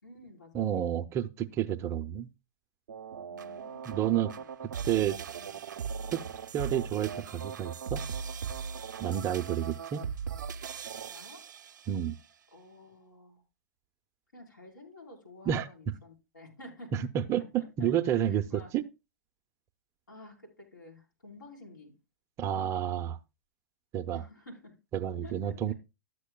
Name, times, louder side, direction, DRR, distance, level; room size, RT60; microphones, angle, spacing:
voice 1, 0.0-0.9 3.3-4.5 5.4-5.6 11.1-11.4 12.5-13.4 14.3-17.0 17.6-18.7 20.1-21.9 24.1-24.7 25.2-25.7, left 2 dB, 85° left, 4.0 m, -51 dB
voice 2, 0.5-2.3 3.9-4.3 4.8-5.2 6.1-6.2 6.5-8.0 9.0-10.0 11.9-12.1 15.5-15.7 17.1-18.8 22.4-23.2 23.9-24.2 24.9-25.7, right 10 dB, 30° right, 0.5 m, -30 dB
sound 1, 2.9-12.1, right 6 dB, 70° right, 0.6 m, -39 dB
13.0 x 8.1 x 2.2 m
hypercardioid pair, 115°, 10 cm